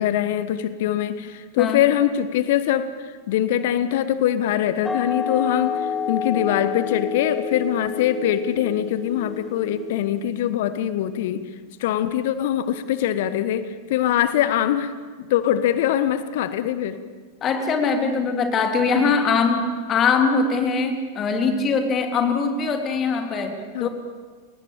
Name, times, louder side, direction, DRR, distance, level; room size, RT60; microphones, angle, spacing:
voice 1, 0.0-11.4 11.8-17.0 18.8-19.2 23.7-23.9, left 11 dB, 55° left, 13 dB, 1.3 m, -23 dB
sound 1, 4.8-10.3, left 6 dB, 10° left, 1.5 m, -29 dB
voice 2, 17.4-23.9, left 4 dB, 30° left, 5 dB, 3.5 m, -22 dB
28.5 x 18.5 x 8.7 m, 1.5 s
figure-of-eight pair, 90°, 0 cm